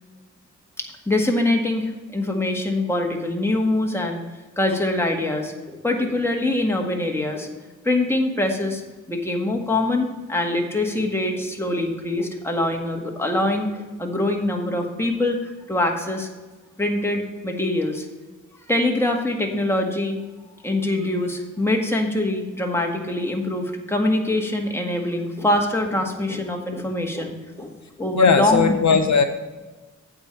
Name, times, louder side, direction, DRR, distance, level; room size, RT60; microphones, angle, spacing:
voice 1, 0.8-4.2 4.6-7.5 7.9-8.8 9.1-15.4 15.7-16.3 16.8-18.1 18.7-20.2 20.6-27.7 28.0-29.0, left 1 dB, 10° left, 1 dB, 1.8 m, -24 dB
voice 2, 28.2-29.2, left 5 dB, 65° left, 8 dB, 0.7 m, -17 dB
8.3 x 4.7 x 7.4 m, 1.3 s
cardioid pair, 60°, 31 cm